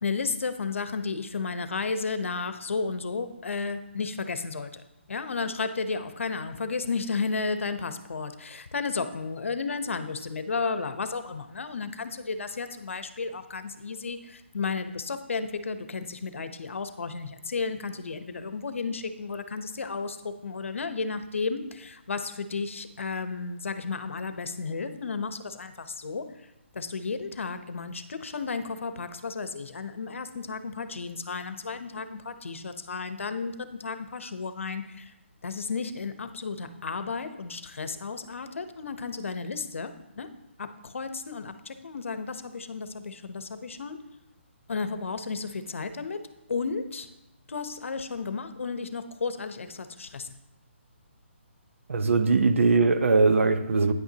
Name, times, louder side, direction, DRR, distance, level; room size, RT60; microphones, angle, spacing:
voice 1, 0.0-4.8 5.1-26.2 26.7-33.5 33.8-35.1 35.4-40.3 40.6-44.0 44.7-46.2 46.5-47.1 47.5-50.3, left 4 dB, 80° left, 10 dB, 0.9 m, -33 dB
voice 2, 51.9-53.9, right 4 dB, 80° right, 9 dB, 0.9 m, -21 dB
9.5 x 8.9 x 2.9 m, 0.97 s
hypercardioid pair, 165°, 7 cm